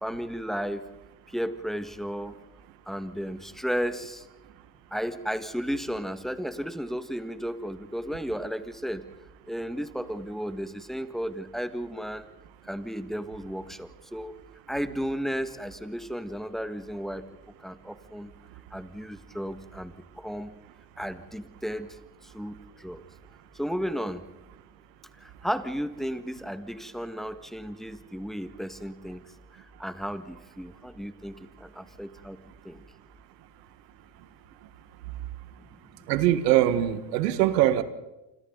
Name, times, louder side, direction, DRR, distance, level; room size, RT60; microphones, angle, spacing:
voice 1, 0.0-0.8 1.3-2.3 2.9-4.2 4.9-9.0 9.5-12.2 12.7-14.3 14.7-17.2 17.6-18.3 18.7-20.5 21.0-21.9 22.3-23.0 23.6-24.2 25.4-29.2 29.8-32.4 32.7-32.8, equal, ahead, 10 dB, 1.8 m, -33 dB
voice 2, 36.1-37.8, right 13 dB, 80° right, 12 dB, 1.8 m, -22 dB
28.5 x 26.0 x 4.0 m, 1.0 s
supercardioid pair, 85°, 48 cm